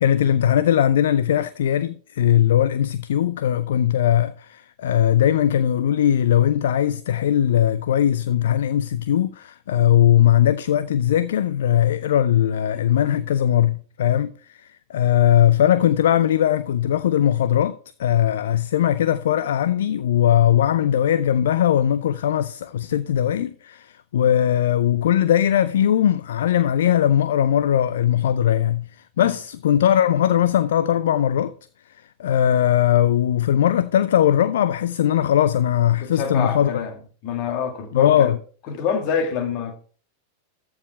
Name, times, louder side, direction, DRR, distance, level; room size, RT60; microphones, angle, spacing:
voice 1, 0.0-31.5 32.2-36.7 37.9-38.4, left 10 dB, 60° left, 0.4 m, -19 dB
voice 2, 36.0-36.9 37.2-38.3 38.7-39.8, left 6 dB, 40° left, 2.2 m, -26 dB
13.5 x 4.8 x 4.4 m
figure-of-eight pair, 90°, 0 cm